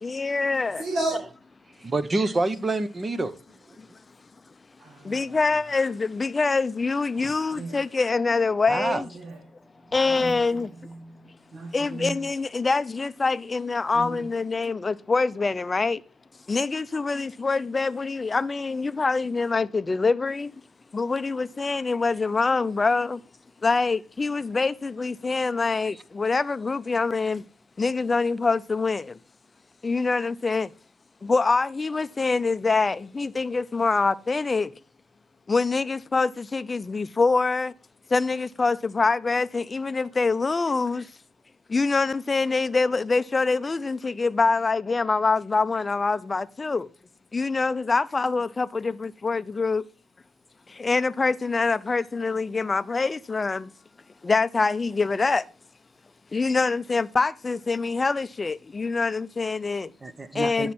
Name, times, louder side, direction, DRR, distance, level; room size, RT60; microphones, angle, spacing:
voice 1, 0.0-0.8 3.8-3.9 5.0-9.1 9.9-10.7 11.7-16.0 16.5-20.5 20.9-23.2 23.6-27.4 27.8-29.2 29.8-30.7 31.2-34.7 35.5-37.7 38.1-41.1 41.7-46.9 47.3-49.8 50.7-53.7 54.2-55.5 56.3-59.9 60.3-60.7, left 4 dB, 25° left, 0.6 m, -25 dB
voice 2, 0.8-1.2 4.8-5.4 7.1-7.8 8.7-9.4 10.1-12.2 13.9-14.2, right 2 dB, 60° right, 2.4 m, -35 dB
voice 3, 1.8-3.3 8.7-9.0 60.0-60.7, right 2 dB, 25° right, 0.9 m, -27 dB
10.0 x 7.1 x 4.3 m
cardioid pair, 90°, 0 cm